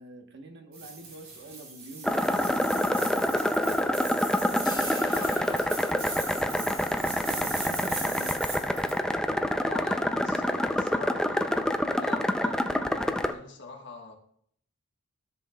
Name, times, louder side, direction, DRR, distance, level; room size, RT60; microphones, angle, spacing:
voice 1, 0.0-3.1 7.2-8.5, right 2 dB, 50° right, 1.1 m, -45 dB
sound 1, 0.7-9.0, right 3 dB, 70° right, 3.1 m, -38 dB
sound 2, 2.0-13.3, left 1 dB, 5° left, 0.3 m, -27 dB
sound 3, 4.6-7.2, left 4 dB, 20° left, 0.7 m, -47 dB
voice 2, 4.9-6.1 9.6-14.2, left 4 dB, 55° left, 1.3 m, -43 dB
13.5 x 7.2 x 2.3 m
head